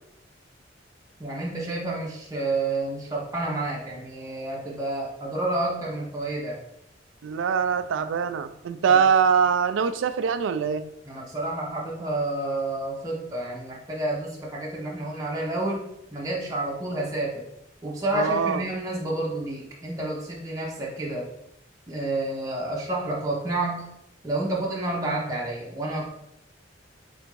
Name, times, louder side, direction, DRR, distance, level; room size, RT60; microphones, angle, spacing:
voice 1, 1.2-6.6 8.9-9.0 11.0-17.3 17.8-21.3 21.9-23.9 24.2-26.1, right 2 dB, 20° right, -4 dB, 0.8 m, -29 dB
voice 2, 7.2-10.8 18.1-18.6, right 6 dB, 85° right, 12 dB, 0.3 m, -23 dB
3.4 x 2.5 x 4.6 m, 0.80 s
head